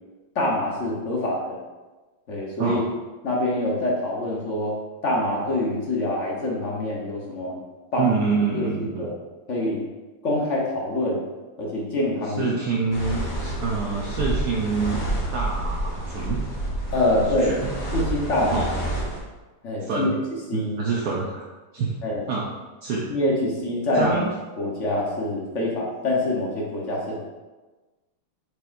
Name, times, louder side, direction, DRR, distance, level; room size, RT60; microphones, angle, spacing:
voice 1, 0.3-1.6 2.3-2.8 3.2-4.7 5.0-7.6 7.9-8.1 8.5-9.1 9.5-9.8 10.2-11.2 11.6-12.6 16.9-17.5 17.9-18.6 19.6-20.1 20.5-20.7 22.0-22.2 23.1-24.2 24.6-27.2, left 1 dB, 45° left, -3 dB, 1.0 m, -25 dB
voice 2, 8.0-9.1 12.4-15.0 15.3-16.4 17.4-17.7 18.5-18.7 19.8-20.1 20.5-21.4 21.7-22.0 22.3-22.5 22.8-23.1 23.9-24.3, right 5 dB, 65° right, -4 dB, 1.1 m, -26 dB
sound 1, 12.9-19.2, right 1 dB, 20° left, 1.2 m, -29 dB
8.1 x 4.7 x 2.6 m, 1.2 s
omnidirectional pair, 2.4 m